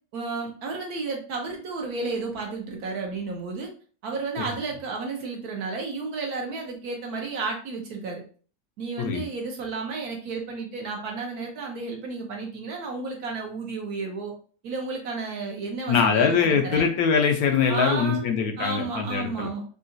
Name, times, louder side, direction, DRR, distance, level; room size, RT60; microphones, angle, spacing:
voice 1, 0.1-3.7 4.0-8.2 8.8-14.3 14.6-16.9 17.7-18.2 18.6-19.6, right 3 dB, 65° right, 1 dB, 1.1 m, -32 dB
voice 2, 15.9-19.5, left 6 dB, 70° left, 4 dB, 0.9 m, -23 dB
3.7 x 2.4 x 2.5 m, 0.41 s
omnidirectional pair, 1.9 m